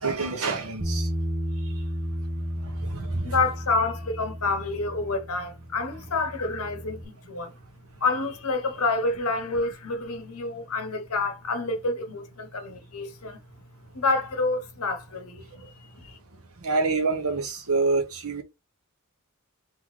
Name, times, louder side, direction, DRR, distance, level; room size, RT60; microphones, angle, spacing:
voice 1, 0.0-1.1 2.8-3.3 16.6-18.4, right 3 dB, 75° right, 1.2 m, -26 dB
Bass guitar, 0.8-7.0, equal, 30° right, 1.1 m, -33 dB
voice 2, 3.2-7.5 8.0-13.4 13.9-15.5 16.0-16.2, left 3 dB, 75° left, 1.0 m, -28 dB
3.8 x 3.3 x 3.2 m
head